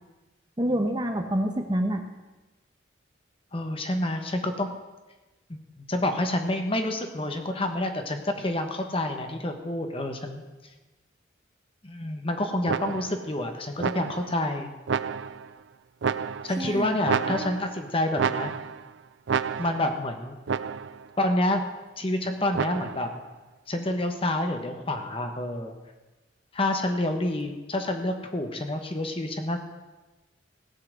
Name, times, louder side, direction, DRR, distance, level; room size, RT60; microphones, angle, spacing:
voice 1, 0.6-2.0 16.6-17.0 17.3-17.5, right 1 dB, 20° right, 5 dB, 1.0 m, -27 dB
voice 2, 3.5-4.7 5.5-10.4 11.8-14.7 16.4-18.5 19.6-20.4 21.2-21.6 22.0-23.1 23.7-25.7 26.5-29.6, left 1 dB, 30° left, 5 dB, 1.2 m, -28 dB
sound 1, 12.7-13.3 13.8-14.4 14.9-15.5 16.0-16.7 17.1-17.8 18.2-18.9 19.3-20.0 20.5-21.1 22.5-23.2, right 6 dB, 70° right, 0.4 m, -30 dB
17.0 x 5.8 x 8.1 m, 1.1 s
head